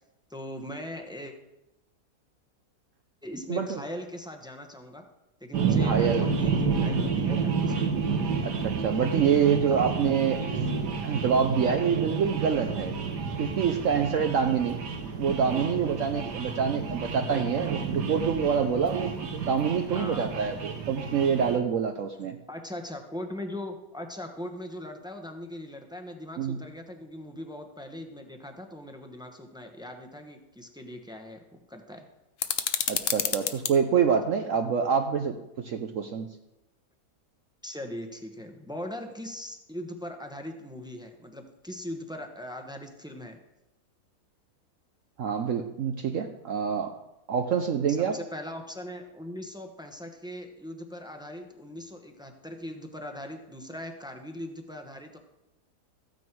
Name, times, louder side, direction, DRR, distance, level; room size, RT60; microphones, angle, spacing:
voice 1, 0.3-1.3 3.2-5.0 5.4-8.0 9.7-9.9 15.5-15.9 17.3-17.8 19.9-20.3 22.5-32.1 37.6-43.4 47.9-55.2, left 1 dB, 5° right, 4 dB, 0.9 m, -40 dB
voice 2, 3.5-3.8 5.6-6.3 8.4-10.4 11.0-12.9 13.4-14.8 15.2-22.4 26.4-26.6 32.9-36.3 45.2-46.9 47.3-48.2, right 7 dB, 60° right, 5 dB, 1.0 m, -26 dB
sound 1, 5.5-21.6, right 5 dB, 85° right, 1.8 m, -30 dB
sound 2, 32.4-33.7, left 9 dB, 60° left, 1.0 m, -29 dB
14.0 x 9.3 x 4.6 m, 0.93 s
omnidirectional pair, 1.7 m